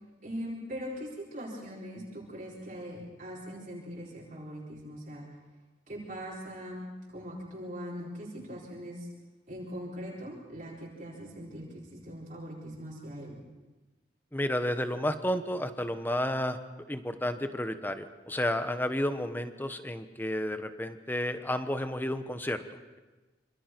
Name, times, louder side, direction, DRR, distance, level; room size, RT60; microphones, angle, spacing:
voice 1, 0.2-5.3 5.9-9.1 9.5-13.4, equal, 45° right, -6 dB, 4.4 m, -41 dB
voice 2, 14.3-16.6 16.9-22.6, left 1 dB, 10° left, 9 dB, 1.1 m, -31 dB
26.5 x 26.5 x 4.6 m, 1.2 s
head